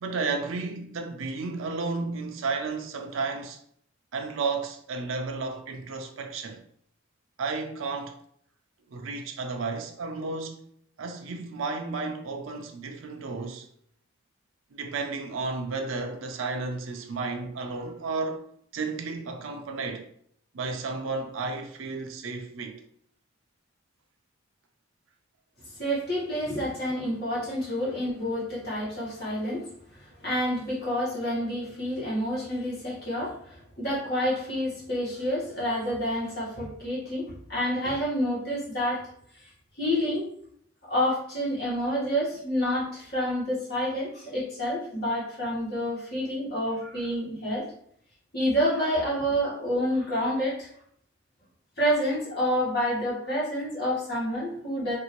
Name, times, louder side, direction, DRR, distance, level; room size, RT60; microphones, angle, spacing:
voice 1, 0.0-3.6 4.1-6.6 7.4-8.1 8.9-10.6 11.0-13.7 14.7-18.4 18.7-20.0 20.5-22.8, right 4 dB, 80° right, 0.5 m, -32 dB
voice 2, 25.8-29.6 29.9-39.0 39.3-39.5 39.8-40.2 40.9-47.7 48.3-50.7 51.8-54.9, equal, 50° left, 1.5 m, -28 dB
2.7 x 2.7 x 3.0 m
head